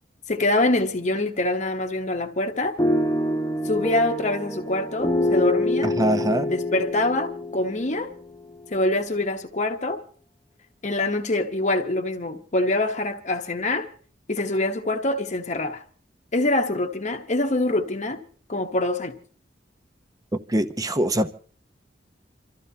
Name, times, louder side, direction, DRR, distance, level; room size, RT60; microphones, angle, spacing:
voice 1, 0.3-2.8 3.6-6.0 6.5-8.1 8.7-10.0 10.8-13.9 14.3-15.8 16.3-18.2 18.5-19.2, left 2 dB, 40° left, 1.1 m, -25 dB
sound 1, 2.8-8.8, left 1 dB, 20° left, 1.0 m, -26 dB
voice 2, 6.0-6.5 20.5-21.3, right 1 dB, 20° right, 0.7 m, -23 dB
28.0 x 14.0 x 2.8 m
head